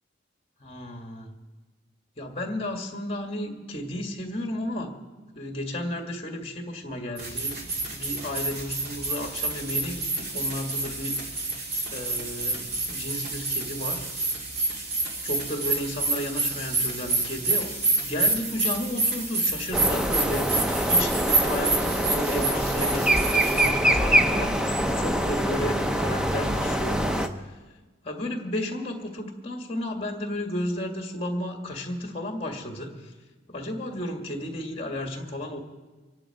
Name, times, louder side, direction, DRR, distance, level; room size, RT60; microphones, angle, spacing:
voice 1, 0.6-1.3 2.2-4.9 5.3-11.2 11.9-14.0 15.2-17.7 18.0-27.5 28.0-33.1 33.5-35.6, left 1 dB, 30° left, 3 dB, 1.9 m, -33 dB
sound 1, 7.2-23.7, right 3 dB, 55° right, 2.2 m, -28 dB
sound 2, 19.7-27.3, right 1 dB, 5° right, 0.6 m, -24 dB
25.0 x 11.0 x 4.8 m, 1.3 s
head